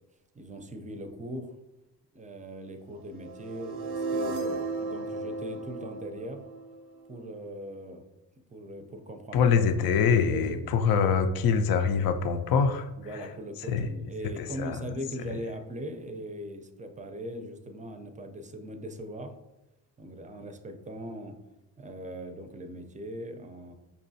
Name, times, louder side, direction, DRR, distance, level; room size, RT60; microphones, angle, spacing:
voice 1, 0.3-1.5 2.1-6.4 7.1-8.0 8.5-9.5 10.2-10.7 13.0-19.3 20.0-21.4 21.8-23.7, right 1 dB, 20° right, 6 dB, 0.5 m, -40 dB
sound 1, 3.2-7.2, right 3 dB, 75° right, 0.6 m, -34 dB
voice 2, 9.3-12.9 13.7-13.9 14.4-14.8, left 6 dB, 60° left, 8 dB, 0.5 m, -24 dB
5.4 x 2.4 x 2.6 m, 0.95 s
cardioid pair, 70°, 40 cm